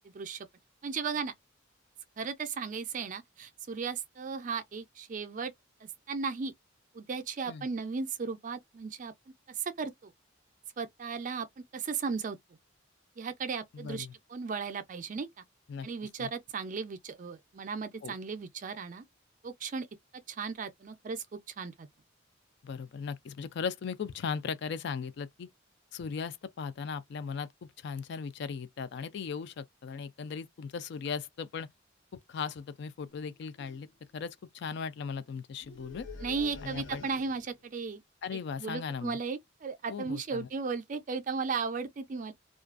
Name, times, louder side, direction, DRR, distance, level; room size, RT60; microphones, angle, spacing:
voice 1, 0.0-0.5 0.8-1.3 2.2-5.5 5.8-6.5 6.9-9.1 9.6-10.1 10.8-11.5 11.7-12.4 13.2-15.4 15.8-19.0 19.4-19.9 20.3-21.9 36.2-38.0 38.6-42.3, right 5 dB, 40° right, 0.4 m, -36 dB
voice 2, 13.7-14.1 15.7-15.9 16.2-16.3 18.0-18.1 22.6-25.5 25.9-31.7 32.1-33.9 34.1-36.1 36.6-37.1 38.2-39.2 39.9-40.5, left 6 dB, 60° left, 0.3 m, -38 dB
sound 1, 33.1-33.3 33.6-33.9 35.6-37.6, left 4 dB, 75° left, 0.7 m, -47 dB
2.4 x 2.2 x 2.4 m
head